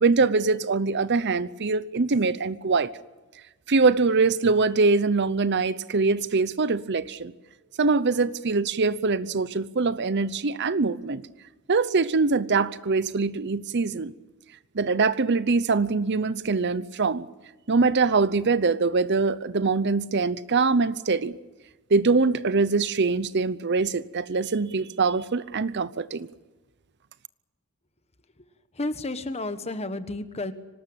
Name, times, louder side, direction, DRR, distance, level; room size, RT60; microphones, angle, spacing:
voice 1, 0.0-2.9 3.7-7.3 7.8-11.2 11.7-14.1 14.7-17.3 17.7-21.4 21.9-26.3, right 4 dB, 50° right, 0.7 m, -23 dB
voice 2, 28.8-30.5, left 2 dB, 30° left, 1.4 m, -31 dB
25.5 x 19.0 x 8.9 m
head